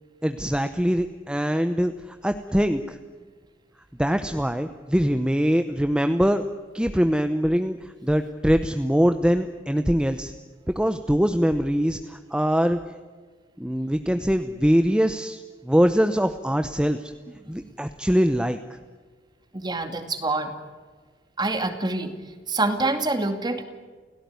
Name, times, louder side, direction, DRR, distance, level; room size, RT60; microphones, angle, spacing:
voice 1, 0.2-3.0 4.0-6.4 6.7-10.3 10.7-12.8 13.6-17.1 17.5-18.8, equal, 5° right, 8 dB, 0.8 m, -23 dB
voice 2, 19.5-20.5 21.4-22.1 22.5-23.6, right 2 dB, 25° right, 7 dB, 2.4 m, -26 dB
29.5 x 17.0 x 9.5 m, 1.5 s
head